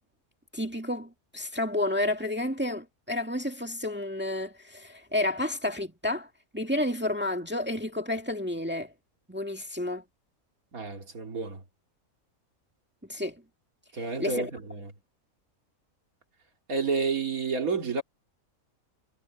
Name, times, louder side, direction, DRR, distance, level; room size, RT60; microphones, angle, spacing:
voice 1, 0.5-6.3 6.5-8.9 9.3-10.0 13.1-13.4 14.2-14.5, left 1 dB, 5° right, 2.0 m, -30 dB
voice 2, 10.7-11.6 13.9-14.9 16.7-18.0, right 4 dB, 70° right, 2.8 m, -30 dB
omnidirectional pair, 1.5 m